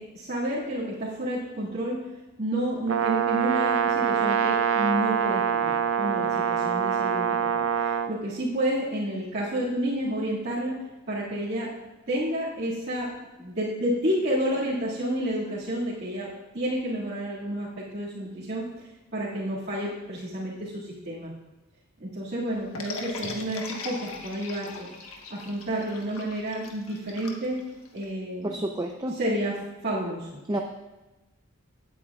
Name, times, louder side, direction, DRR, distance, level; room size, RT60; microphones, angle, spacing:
voice 1, 0.0-2.0 2.4-10.8 11.1-11.7 12.1-13.1 13.4-18.6 19.1-21.3 22.0-24.9 25.3-27.6 27.9-28.6 29.1-29.6 29.8-30.4, right 1 dB, 50° right, -10 dB, 2.1 m, -30 dB
Brass instrument, 2.9-8.1, right 8 dB, 70° right, 0.5 m, -25 dB
sound 1, 22.7-28.1, left 3 dB, 80° left, 1.3 m, -39 dB
voice 2, 28.4-29.2 30.5-30.6, right 1 dB, 20° right, 2 dB, 0.5 m, -29 dB
16.5 x 8.4 x 2.4 m, 1.1 s
head